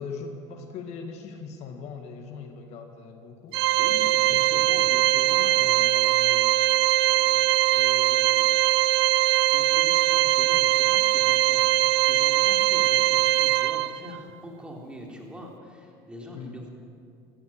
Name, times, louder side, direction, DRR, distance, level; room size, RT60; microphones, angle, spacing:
voice 1, 0.0-3.6 4.3-4.7 16.3-16.7, left 5 dB, 60° left, 5 dB, 1.7 m, -40 dB
Organ, 3.5-14.2, right 16 dB, 85° right, 0.4 m, -21 dB
voice 2, 3.8-6.4 7.0-8.6 9.2-16.7, equal, 10° right, -1 dB, 3.6 m, -43 dB
16.5 x 14.5 x 5.9 m, 2.4 s
supercardioid pair, 95°, 13 cm